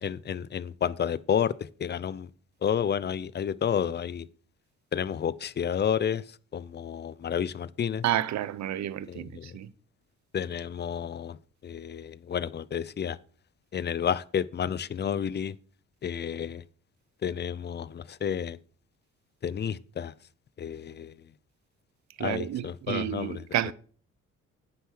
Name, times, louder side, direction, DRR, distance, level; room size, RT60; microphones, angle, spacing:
voice 1, 0.0-2.3 2.6-4.3 4.9-6.2 6.5-8.0 9.1-9.5 10.3-11.4 11.6-13.2 13.7-15.6 16.0-16.6 17.2-18.6 19.4-20.1 20.6-21.1 22.2-23.7, left 8 dB, 35° left, 0.6 m, -30 dB
voice 2, 8.0-9.7 22.2-23.7, right 12 dB, 65° right, 0.8 m, -30 dB
9.2 x 7.0 x 6.3 m
cardioid pair, 90°, 30 cm